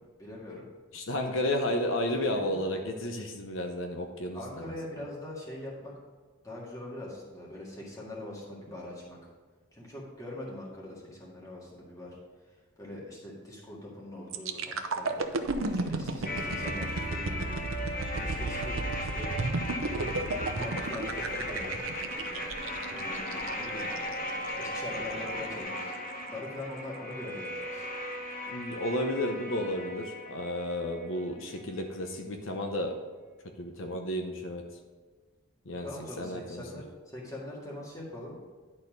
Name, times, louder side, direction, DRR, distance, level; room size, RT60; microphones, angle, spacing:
voice 1, 0.2-0.7 2.3-2.6 4.3-5.9 6.4-9.2 9.7-12.1 12.8-15.1 15.6-17.7 18.1-19.3 20.2-22.0 22.9-23.9 24.5-26.0 26.3-27.9 35.8-38.4, left 1 dB, 15° left, -4 dB, 2.0 m, -42 dB
voice 2, 0.9-4.7 28.5-32.9 33.6-34.6 35.7-35.9 36.2-36.8, left 1 dB, 75° left, 3 dB, 0.8 m, -32 dB
sound 1, 14.3-24.1 24.6-24.8, right 3 dB, 80° right, 0.7 m, -34 dB
sound 2, 15.1-25.6, equal, 30° right, 1.6 m, -50 dB
Absynths Guitar, 16.2-31.3 31.5-31.6, left 1 dB, 45° left, 1.2 m, -37 dB
11.0 x 4.2 x 5.1 m, 1.4 s
head